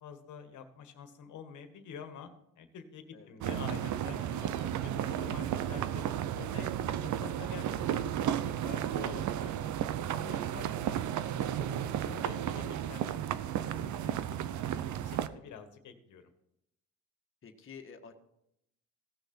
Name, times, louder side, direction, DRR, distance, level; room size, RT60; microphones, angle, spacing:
voice 1, 0.0-2.3 2.6-6.7 7.0-9.6 10.1-13.2 13.5-14.5 14.9-16.3, left 7 dB, 75° left, 8 dB, 1.6 m, -48 dB
sound 1, 3.4-15.3, right 10 dB, 70° right, 0.7 m, -33 dB
voice 2, 15.2-15.5 17.4-18.1, left 6 dB, 45° left, 4 dB, 1.6 m, -52 dB
16.5 x 6.5 x 4.4 m, 0.79 s
cardioid pair, 90°, 30 cm